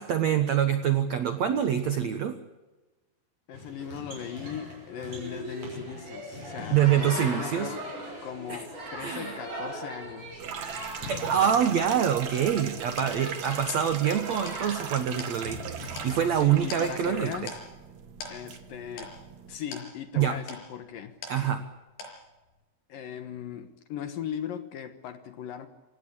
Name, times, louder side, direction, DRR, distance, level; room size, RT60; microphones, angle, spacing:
voice 1, 0.0-2.4 6.7-7.7 8.5-8.6 9.0-9.4 11.1-17.5 20.1-20.4 21.3-21.6, right 9 dB, 75° right, 9 dB, 1.6 m, -25 dB
voice 2, 3.5-7.9 8.2-10.4 16.3-17.6 18.3-19.1 19.5-21.2 22.9-25.7, left 9 dB, 65° left, 9 dB, 2.5 m, -38 dB
sound 1, 3.5-16.4, equal, 35° right, 7.0 m, -40 dB
sound 2, 10.4-19.6, right 8 dB, 55° right, 2.3 m, -39 dB
sound 3, 13.0-21.7 22.0-22.6, left 3 dB, 85° left, 7.7 m, -45 dB
27.0 x 17.5 x 8.6 m, 1.1 s
omnidirectional pair, 5.1 m